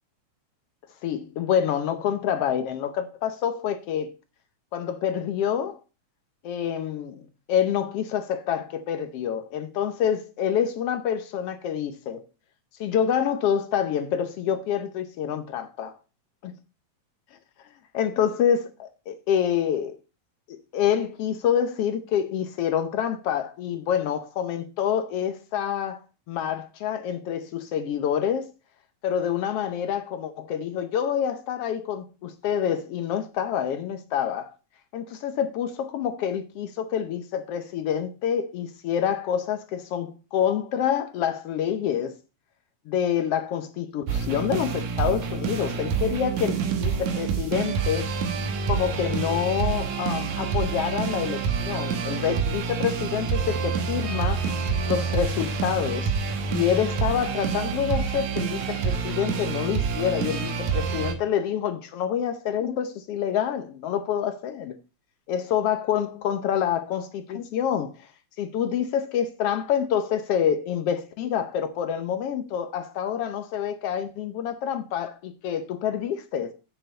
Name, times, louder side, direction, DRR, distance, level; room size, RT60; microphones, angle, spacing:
voice 1, 1.0-4.1 4.7-5.8 6.4-7.2 7.5-12.2 12.8-16.0 16.4-16.5 17.9-20.0 20.5-26.0 26.3-28.5 29.0-34.5 34.9-42.1 42.9-48.1 48.7-54.4 54.9-56.1 56.5-64.7 65.3-67.9 68.4-76.5, left 9 dB, 70° left, 1.5 m, -27 dB
sound 1, 44.1-61.2, right 6 dB, 75° right, 2.5 m, -27 dB
7.9 x 6.7 x 5.3 m
omnidirectional pair, 3.3 m